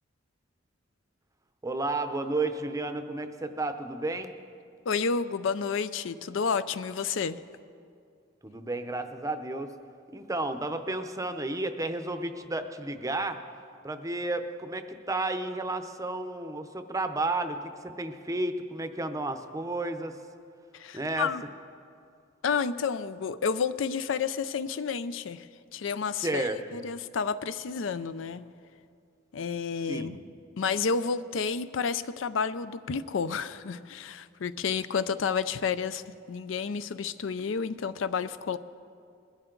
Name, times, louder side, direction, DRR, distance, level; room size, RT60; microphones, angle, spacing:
voice 1, 1.6-4.4 8.4-9.7 10.1-13.4 13.8-20.2 20.9-21.3 26.2-26.8 29.9-30.2, right 2 dB, 15° right, 8 dB, 0.6 m, -32 dB
voice 2, 4.9-7.4 20.7-21.4 22.4-28.5 29.3-30.2 30.6-36.0 36.3-38.6, left 5 dB, 70° left, 14 dB, 0.4 m, -30 dB
21.0 x 12.5 x 3.9 m, 2.3 s
head